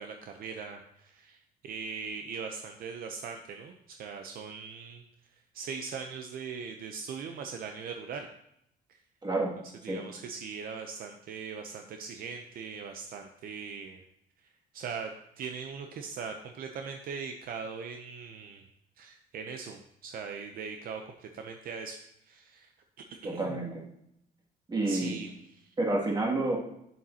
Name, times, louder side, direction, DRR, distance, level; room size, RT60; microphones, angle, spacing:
voice 1, 0.0-5.0 5.3-8.3 8.9-9.0 9.8-14.0 14.4-15.1 15.4-18.6 19.0-22.0 22.2-22.7 23.2-23.6 24.8-25.3 25.6-25.8, right 5 dB, 60° right, 5 dB, 0.6 m, -40 dB
voice 2, 9.2-9.5 9.8-10.0 23.2-23.8 24.7-25.2 25.8-26.6, right 2 dB, 25° right, -3 dB, 2.3 m, -29 dB
8.6 x 7.1 x 2.8 m, 0.76 s
cardioid pair, 110°, 17 cm